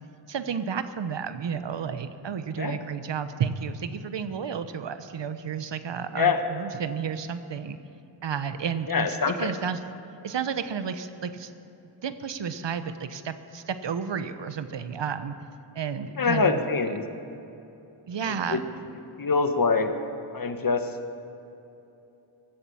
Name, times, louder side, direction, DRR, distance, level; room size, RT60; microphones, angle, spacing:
voice 1, 0.3-7.8 8.2-9.8 10.2-11.5 12.0-15.4 15.7-16.6 18.1-18.6, right 7 dB, 60° right, 11 dB, 1.0 m, -32 dB
voice 2, 8.9-9.5 16.2-17.0 18.5-18.6 19.2-19.9 20.3-20.8, left 4 dB, 45° left, 7 dB, 1.4 m, -24 dB
16.0 x 11.5 x 7.1 m, 2.9 s
cardioid pair, 55°, 49 cm